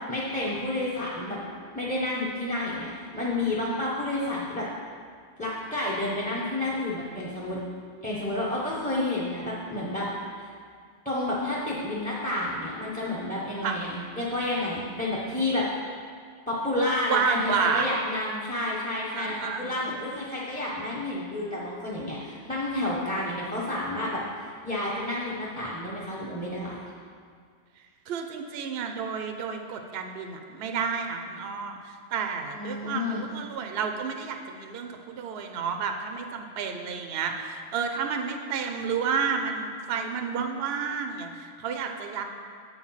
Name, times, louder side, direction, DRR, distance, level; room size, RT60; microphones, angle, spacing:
voice 1, 0.1-1.4 1.7-4.7 5.4-7.6 8.0-10.1 10.4-10.5 11.0-15.6 16.5-26.8 32.5-33.3, left 1 dB, 10° left, -7 dB, 0.8 m, -30 dB
voice 2, 17.1-17.9 19.2-19.9 28.1-31.8 32.1-42.2, right 6 dB, 65° right, 4 dB, 0.8 m, -30 dB
7.9 x 4.6 x 5.6 m, 2.1 s
omnidirectional pair, 1.2 m